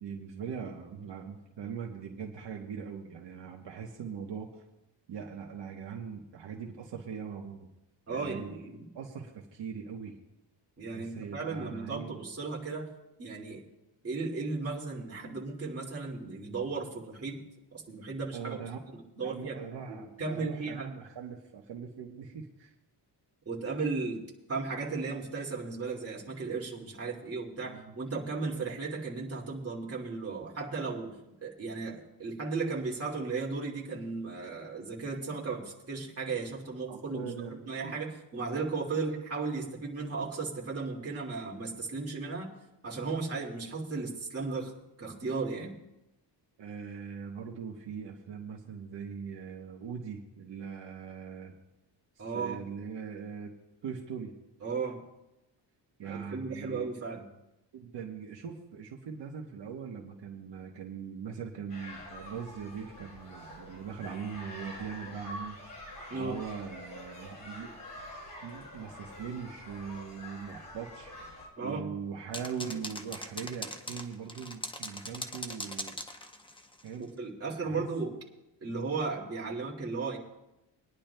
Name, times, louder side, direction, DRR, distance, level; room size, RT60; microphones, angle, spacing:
voice 1, 0.0-4.5 5.1-7.7 8.1-8.6 8.9-10.2 10.9-12.3 18.3-18.8 19.2-22.7 27.6-27.9 36.9-37.9 46.6-51.5 52.3-53.5 53.8-54.3 56.0-56.9 57.7-65.6 66.1-67.7 68.4-71.1 71.6-76.0 76.8-77.1 77.6-77.9, right 7 dB, 70° right, 0 dB, 1.2 m, -41 dB
voice 2, 8.1-8.9 10.8-12.9 13.2-13.6 14.0-17.4 17.7-18.6 18.9-19.6 19.9-20.9 23.5-24.2 24.5-42.5 42.8-44.7 45.0-45.7 52.2-52.6 54.6-55.0 56.0-57.3 66.1-66.4 71.6-71.9 77.0-78.1 78.6-80.2, right 4 dB, 30° right, -2 dB, 2.2 m, -35 dB
sound 1, 61.7-71.5, left 1 dB, 45° left, 4.8 m, -46 dB
sound 2, 72.3-76.9, left 2 dB, 10° left, 0.6 m, -40 dB
24.0 x 10.5 x 2.2 m, 0.93 s
wide cardioid pair, 150°, 44 cm